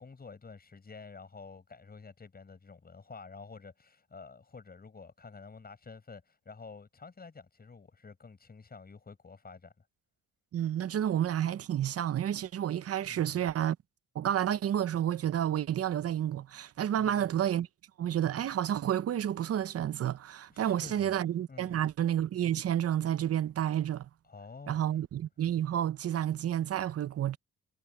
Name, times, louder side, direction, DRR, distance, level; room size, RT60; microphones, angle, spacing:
voice 1, 0.0-9.9 13.0-13.4 17.0-17.3 20.5-21.2 21.5-21.9 24.2-24.8, left 4 dB, 30° left, 7.2 m, -50 dB
voice 2, 10.5-13.8 14.1-17.7 18.0-24.1 24.7-27.4, right 10 dB, 50° right, 0.8 m, -30 dB
cardioid pair, 90°, 30 cm